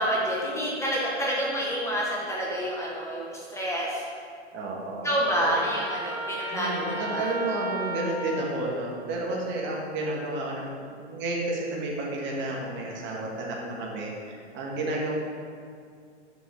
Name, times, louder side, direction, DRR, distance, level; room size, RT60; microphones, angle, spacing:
voice 1, 0.0-4.0 5.0-7.3, equal, 10° left, -5 dB, 1.4 m, -28 dB
voice 2, 4.5-5.2 6.5-15.1, right 2 dB, 30° right, -2 dB, 1.8 m, -31 dB
Trumpet, 5.2-8.6, right 1 dB, 80° right, 2.5 m, -34 dB
12.5 x 6.1 x 3.6 m, 2.2 s
hypercardioid pair, 120°, 35 cm